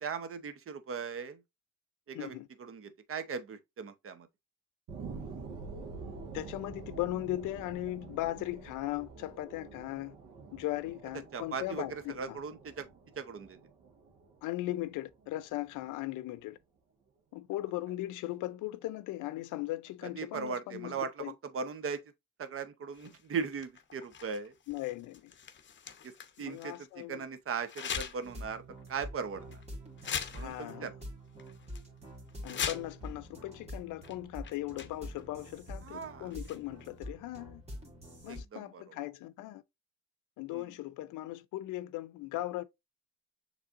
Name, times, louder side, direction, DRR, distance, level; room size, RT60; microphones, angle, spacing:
voice 1, 0.0-1.4 2.1-4.3 11.3-12.9 13.2-13.6 20.2-22.0 22.4-24.5 26.0-26.1 26.4-28.6 28.9-29.6 30.3-30.9 35.8-36.3 38.3-39.0 40.5-40.7, right 5 dB, 45° right, 0.8 m, -39 dB
voice 2, 2.1-2.5 6.3-10.2 10.5-12.4 14.4-16.6 17.3-21.3 24.7-25.3 26.4-27.2 30.4-30.9 32.4-37.6 38.2-39.6 40.4-42.6, left 16 dB, 90° left, 0.5 m, -38 dB
sound 1, 4.9-15.9 16.4-16.5, right 4 dB, 85° right, 1.5 m, -47 dB
sound 2, 22.9-26.8 27.7-28.4 28.8-28.9 29.5-29.6 30.0-30.8 31.0-31.1 31.4-31.8 32.3-33.1 34.0-34.1 34.4-35.2 36.3-36.8, left 7 dB, 40° left, 0.7 m, -41 dB
sound 3, 28.2-38.4, equal, 20° right, 2.1 m, -46 dB
6.5 x 3.3 x 2.5 m
cardioid pair, 90°, 30 cm